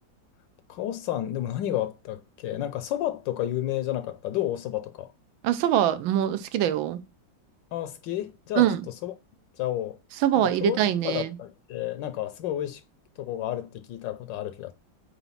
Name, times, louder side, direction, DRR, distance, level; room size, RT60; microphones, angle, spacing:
voice 1, 0.7-5.1 7.7-8.7 9.0-9.1 9.6-10.0 10.6-10.8 11.0-12.8 13.2-14.7, left 13 dB, 75° left, 1.2 m, -31 dB
voice 2, 5.4-7.0 8.6-8.8 10.2-11.3, right 11 dB, 85° right, 1.4 m, -23 dB
4.3 x 4.0 x 5.5 m
omnidirectional pair, 2.1 m